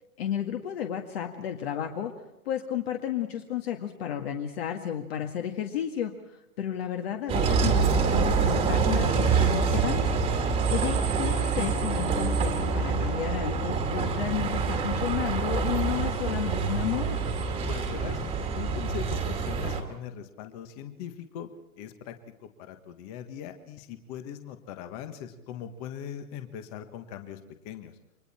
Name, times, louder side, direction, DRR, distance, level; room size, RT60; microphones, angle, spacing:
voice 1, 0.2-2.1 2.5-6.1 6.6-10.0 10.4-17.2, left 10 dB, 40° left, 4 dB, 1.9 m, -32 dB
Bus, 7.3-19.8, right 5 dB, 10° right, 2.1 m, -26 dB
voice 2, 17.7-18.2 18.5-21.5 21.8-22.2 22.4-27.9, left 9 dB, 25° left, 7 dB, 1.6 m, -40 dB
29.5 x 24.5 x 4.4 m, 0.92 s
hypercardioid pair, 155°, 46 cm